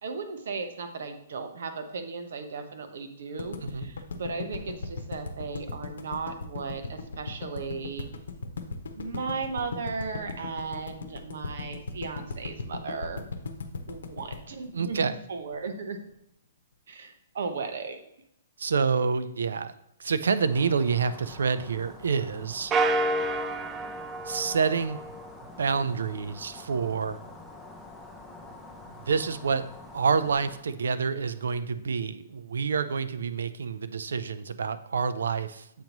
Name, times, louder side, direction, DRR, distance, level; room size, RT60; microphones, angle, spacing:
voice 1, 0.0-8.1 8.9-13.2 13.9-16.0 16.9-18.0, right 4 dB, 70° right, 7 dB, 1.0 m, -36 dB
sound 1, 3.4-15.6, left 4 dB, 85° left, 0.8 m, -37 dB
voice 2, 14.7-15.2 18.6-19.7 20.0-22.7 24.2-25.0 25.6-27.2 29.1-29.7 29.9-35.8, right 5 dB, 90° right, 13 dB, 0.5 m, -28 dB
sound 2, 20.4-30.6, left 3 dB, ahead, 0.8 m, -47 dB
sound 3, 22.7-25.4, right 2 dB, 20° right, 0.3 m, -29 dB
7.3 x 3.0 x 5.2 m, 0.78 s
hypercardioid pair, 150°, 0 cm